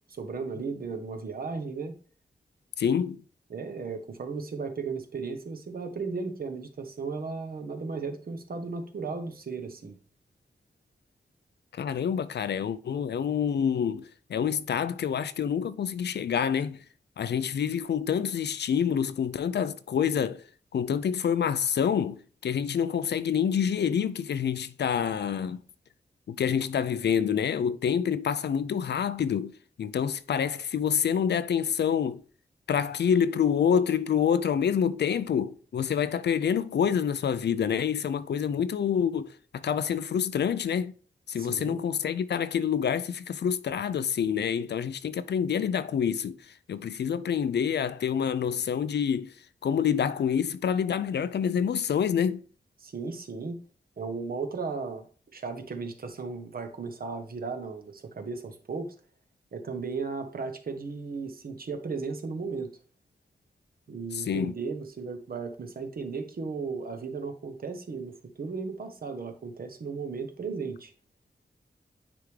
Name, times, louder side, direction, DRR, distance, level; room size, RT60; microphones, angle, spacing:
voice 1, 0.1-1.9 3.5-9.9 41.4-41.8 52.8-53.6 54.0-55.0 55.3-58.9 59.5-62.7 63.9-70.9, right 4 dB, 60° right, 1.0 m, -35 dB
voice 2, 2.8-3.2 11.7-16.8 17.2-20.4 20.7-25.6 26.3-29.5 29.8-32.2 32.7-40.9 41.3-46.4 46.7-49.3 49.6-52.4 64.1-64.5, left 8 dB, 80° left, 0.4 m, -27 dB
9.8 x 3.5 x 3.2 m
wide cardioid pair, 110°, 17 cm